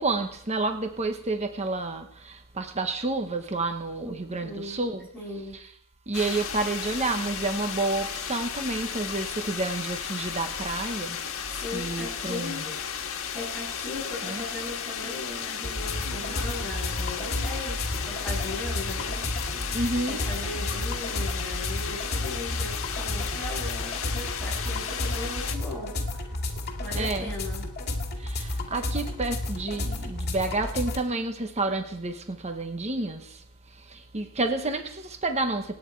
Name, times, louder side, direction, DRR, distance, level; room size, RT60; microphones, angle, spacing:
voice 1, 0.0-5.1 5.5-5.6 6.1-11.2 11.7-12.6 14.2-14.4 19.7-20.2 26.9-27.3 28.2-35.8, right 2 dB, 30° right, 6 dB, 1.1 m, -30 dB
voice 2, 4.4-5.6 11.6-12.7 13.3-19.3 20.1-26.3 26.8-27.7, left 2 dB, ahead, -9 dB, 8.0 m, -38 dB
sound 1, 6.1-25.6, left 7 dB, 65° left, 1.6 m, -34 dB
Subway metro underground / Alarm, 14.6-24.4, right 2 dB, 65° right, 3.1 m, -51 dB
sound 2, 15.6-31.0, left 2 dB, 45° left, 2.5 m, -32 dB
27.0 x 9.2 x 4.6 m, 0.68 s
head